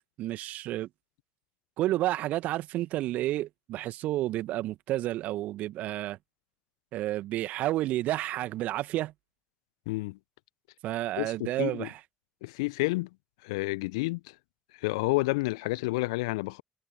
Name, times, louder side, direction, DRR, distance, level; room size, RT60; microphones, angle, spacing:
voice 1, 0.2-0.9 1.8-6.2 6.9-9.1 10.8-12.0, right 15 dB, 65° right, 2.0 m, -30 dB
voice 2, 9.9-10.2 11.2-11.9 12.4-13.1 13.4-14.2 14.8-16.6, left 23 dB, 75° left, 1.0 m, -30 dB
figure-of-eight pair, 40°, 3 cm